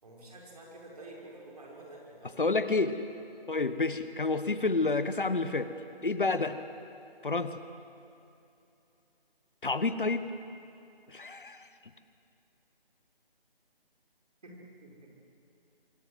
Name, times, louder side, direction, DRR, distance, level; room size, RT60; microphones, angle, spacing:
voice 1, 0.0-2.4 14.4-14.5 14.8-15.1, right 2 dB, 40° right, -2 dB, 5.9 m, -49 dB
voice 2, 2.4-3.0 3.5-5.7 6.0-6.6 7.2-7.6 9.6-10.3 11.1-11.7, left 3 dB, 55° left, 11 dB, 1.4 m, -29 dB
25.0 x 23.0 x 8.0 m, 2.7 s
figure-of-eight pair, 155°, 30 cm